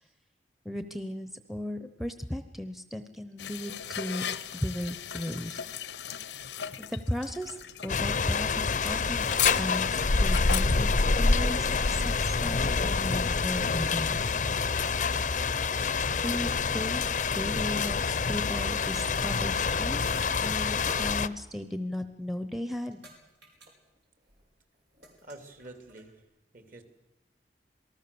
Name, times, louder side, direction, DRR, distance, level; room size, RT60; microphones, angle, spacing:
voice 1, 0.6-4.3 4.6-5.6 6.8-7.6 7.8-14.2 16.2-20.1 20.4-23.0, left 1 dB, ahead, 9 dB, 0.9 m, -36 dB
sound 1, 3.4-12.1, left 10 dB, 80° left, 0.9 m, -37 dB
sound 2, 7.9-21.3, left 4 dB, 45° left, 0.7 m, -27 dB
sound 3, 20.0-20.4 20.9-21.1 22.1-23.2 23.4-23.7 24.0-24.4 24.7-26.0, right 2 dB, 85° right, 5.8 m, -49 dB
voice 2, 25.2-26.2 26.5-26.8, right 2 dB, 50° right, 7 dB, 2.9 m, -47 dB
27.5 x 19.0 x 7.0 m, 1.0 s
head